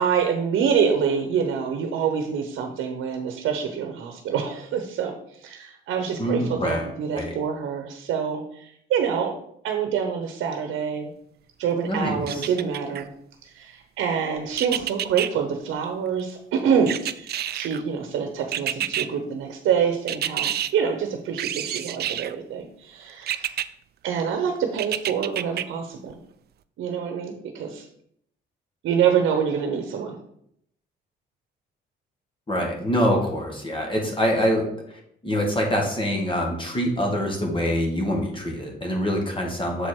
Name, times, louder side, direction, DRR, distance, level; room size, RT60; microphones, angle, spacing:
voice 1, 0.0-9.3 9.6-11.1 11.6-13.1 13.4-23.6 24.0-26.1 26.8-27.9 28.8-30.2, right 7 dB, 80° right, 5 dB, 0.9 m, -26 dB
voice 2, 6.2-6.9 7.2-7.3 11.9-12.5 32.5-34.6 34.9-39.9, equal, 25° left, 0 dB, 1.9 m, -25 dB
sound 1, 12.3-13.0 14.6-15.3 16.9-17.8 18.5-19.1 20.1-20.7 21.4-22.3 23.3-23.7 24.8-25.6 26.1-26.2, right 11 dB, 55° right, 0.4 m, -28 dB
6.8 x 4.6 x 4.5 m, 0.71 s
cardioid pair, 90°, 20 cm